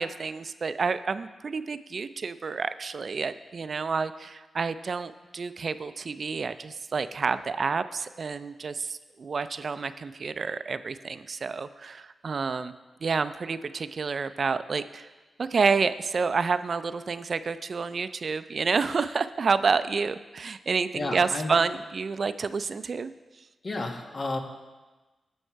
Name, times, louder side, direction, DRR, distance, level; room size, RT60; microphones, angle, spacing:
voice 1, 0.0-12.7 13.0-15.1 15.4-23.1, right 5 dB, 60° right, 13 dB, 0.4 m, -29 dB
voice 2, 20.9-21.5 23.6-24.4, left 2 dB, 50° left, 4 dB, 1.2 m, -32 dB
12.0 x 6.3 x 4.5 m, 1.2 s
cardioid pair, 50°, 0 cm